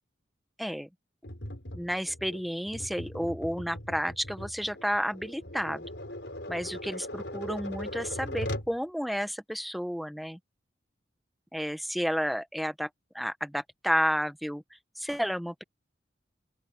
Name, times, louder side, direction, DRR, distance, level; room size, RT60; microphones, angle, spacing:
voice 1, 0.6-0.9 1.7-5.9 6.5-10.4 11.5-12.9 13.1-14.6 15.0-15.6, equal, ahead, 1.0 m, -31 dB
Tap, 1.2-8.8, left 1 dB, 65° left, 5.1 m, -39 dB
open air
head